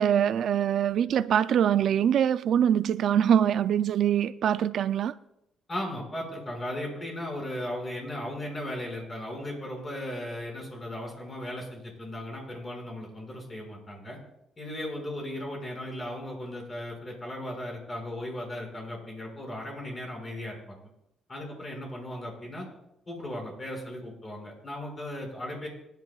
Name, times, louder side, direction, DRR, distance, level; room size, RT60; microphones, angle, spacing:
voice 1, 0.0-5.1, right 9 dB, 70° right, 0.4 m, -24 dB
voice 2, 5.7-14.2 14.6-20.9 21.3-22.7 23.1-25.7, left 1 dB, 25° left, 5.7 m, -36 dB
26.0 x 10.5 x 2.4 m
cardioid pair, 90°, 0 cm